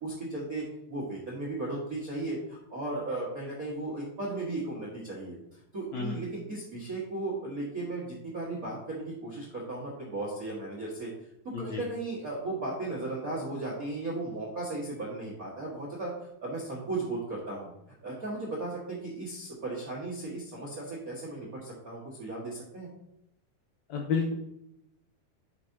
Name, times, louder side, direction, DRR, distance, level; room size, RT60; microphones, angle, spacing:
voice 1, 0.0-11.1 11.6-16.1 16.4-17.7 18.0-22.9, right 2 dB, 55° right, -5 dB, 0.9 m, -36 dB
voice 2, 11.5-11.8 23.9-24.3, left 5 dB, 80° left, 1 dB, 1.6 m, -30 dB
10.0 x 5.2 x 2.8 m, 0.80 s
omnidirectional pair, 4.3 m